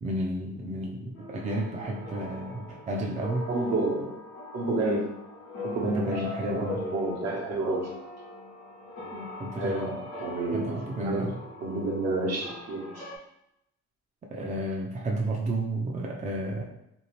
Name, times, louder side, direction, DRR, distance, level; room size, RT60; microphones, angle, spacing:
voice 1, 0.0-3.5 5.8-6.8 9.1-10.0 10.5-11.4 14.3-16.6, right 1 dB, 25° right, 0 dB, 0.4 m, -32 dB
sound 1, 1.1-13.2, left 2 dB, 85° left, 0.8 m, -41 dB
voice 2, 3.5-4.1 4.5-5.1 5.6-7.9 9.6-11.3 11.6-13.1, right 2 dB, 60° right, -2 dB, 0.9 m, -30 dB
2.7 x 2.4 x 3.0 m, 0.82 s
cardioid pair, 90°, 30 cm